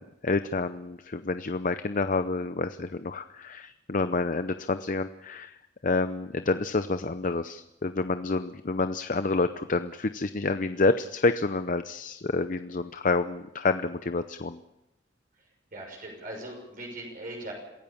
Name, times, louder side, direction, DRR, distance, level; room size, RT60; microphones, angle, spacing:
voice 1, 0.0-5.6 5.8-14.6, left 3 dB, 45° left, 10 dB, 0.7 m, -28 dB
voice 2, 15.7-17.5, right 1 dB, 50° right, 0 dB, 6.4 m, -39 dB
27.0 x 16.5 x 7.2 m, 0.95 s
head